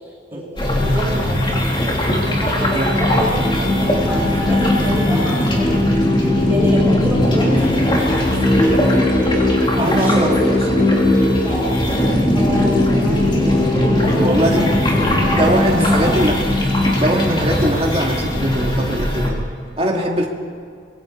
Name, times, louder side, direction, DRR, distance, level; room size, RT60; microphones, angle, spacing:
voice 1, 0.3-5.8 6.5-8.3 9.7-10.6 11.3-14.6 15.3-16.2 19.8-20.1, equal, 10° right, -5 dB, 7.5 m, -27 dB
sound 1, 0.6-19.3, left 1 dB, 25° left, 3.3 m, -18 dB
voice 2, 9.7-10.6 14.1-14.7 15.1-16.4 17.0-19.4 19.8-20.3, right 1 dB, 30° right, 0 dB, 2.7 m, -21 dB
25.0 x 23.5 x 4.8 m, 2.3 s
head